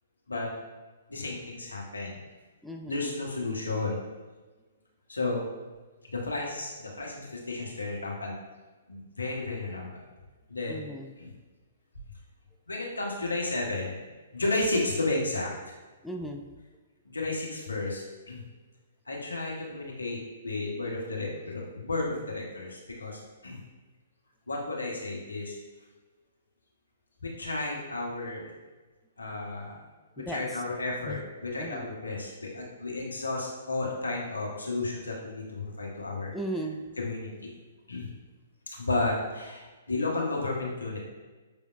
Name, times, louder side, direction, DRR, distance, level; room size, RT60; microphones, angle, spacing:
voice 1, 1.1-2.2 2.9-4.0 5.1-5.4 6.1-8.3 8.9-10.0 10.5-10.8 11.2-11.3 12.7-14.0 14.3-15.5 17.0-18.4 19.1-23.6 24.5-25.6 27.2-28.5 29.2-29.7 30.2-36.3 37.0-37.5 37.9-38.1 38.8-41.0, left 2 dB, 80° left, -2 dB, 1.1 m, -32 dB
voice 2, 2.6-3.2 10.7-11.1 16.0-16.5 30.2-30.6 31.1-31.2 31.6-31.9 36.3-36.8, right 1 dB, ahead, 1 dB, 0.3 m, -37 dB
6.0 x 3.4 x 2.5 m, 1.3 s
figure-of-eight pair, 120°, 0 cm